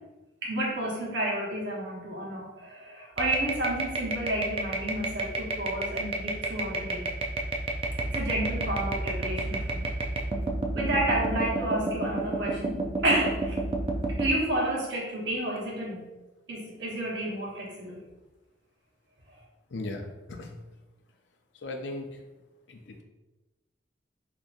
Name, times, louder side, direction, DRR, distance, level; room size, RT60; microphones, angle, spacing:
voice 1, 0.4-7.1 8.0-9.9 10.7-13.6 14.2-16.1 16.5-18.0, right 1 dB, 65° right, -4 dB, 1.1 m, -30 dB
sound 1, 3.2-14.3, right 2 dB, 30° right, 0.4 m, -30 dB
voice 2, 19.7-20.6 21.6-22.1 22.7-23.0, left 2 dB, 70° left, 3 dB, 0.5 m, -37 dB
3.7 x 2.9 x 2.5 m, 1.1 s
head